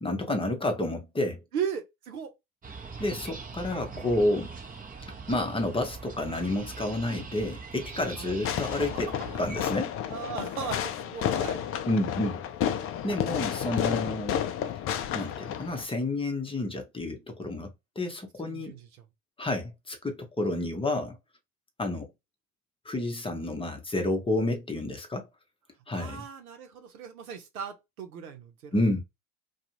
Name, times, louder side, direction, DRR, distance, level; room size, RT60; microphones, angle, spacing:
voice 1, 0.0-1.4 3.0-4.5 5.3-9.1 9.4-10.0 11.9-12.4 13.0-14.4 15.1-17.7 18.0-18.8 19.4-21.2 21.8-22.1 22.8-25.3 25.9-26.3 28.7-29.0, left 2 dB, 10° left, 0.7 m, -30 dB
voice 2, 1.5-2.3 8.2-8.4 10.1-11.6 18.4-18.9 25.9-28.7, right 7 dB, 85° right, 0.8 m, -37 dB
sound 1, 2.6-9.7, right 4 dB, 20° right, 0.8 m, -42 dB
Fireworks, 8.4-15.8, left 9 dB, 35° left, 0.4 m, -31 dB
2.5 x 2.3 x 2.9 m
hypercardioid pair, 75°, 43 cm